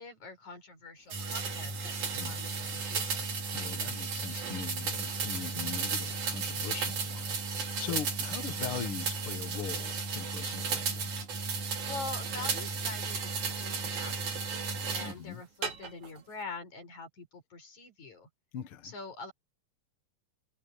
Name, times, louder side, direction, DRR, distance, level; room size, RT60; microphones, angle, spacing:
voice 1, 0.0-3.3 11.9-18.3 18.8-19.3, left 4 dB, 75° left, 7.7 m, -45 dB
sound 1, 1.1-15.2 15.6-16.2, right 4 dB, 75° right, 4.5 m, -34 dB
voice 2, 2.1-2.4 3.5-11.1 15.0-15.4 18.5-18.9, left 9 dB, 55° left, 1.9 m, -41 dB
omnidirectional pair, 3.4 m